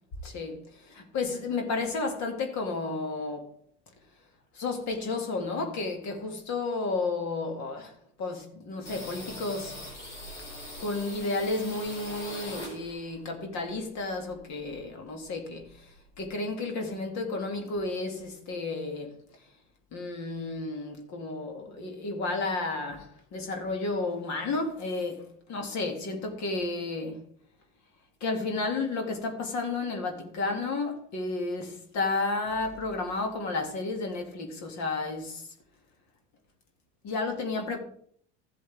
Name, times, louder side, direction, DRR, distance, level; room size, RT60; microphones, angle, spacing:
voice 1, 0.2-3.5 4.5-9.8 10.8-19.2 19.9-27.2 28.2-35.4 37.0-37.8, left 3 dB, 50° left, 2.4 m, -32 dB
sound 1, 8.9-13.2 13.5-14.9 15.2-15.3 15.6-16.3, left 1 dB, 90° left, 3.7 m, -43 dB
14.0 x 7.7 x 3.5 m
hypercardioid pair, 70°, 35 cm